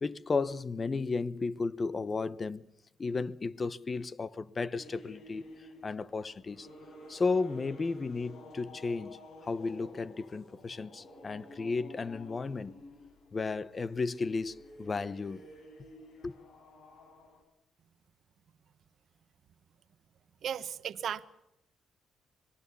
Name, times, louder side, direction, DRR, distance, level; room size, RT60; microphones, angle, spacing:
voice 1, 0.0-2.7 3.0-5.4 5.8-6.7 7.1-12.7 13.3-15.5 16.2-16.3, left 4 dB, 35° left, 0.9 m, -34 dB
sound 1, 4.7-17.4, left 1 dB, 65° left, 5.9 m, -52 dB
voice 2, 20.4-21.3, right 8 dB, 65° right, 1.0 m, -35 dB
25.0 x 20.0 x 6.9 m
cardioid pair, 90°, 0 cm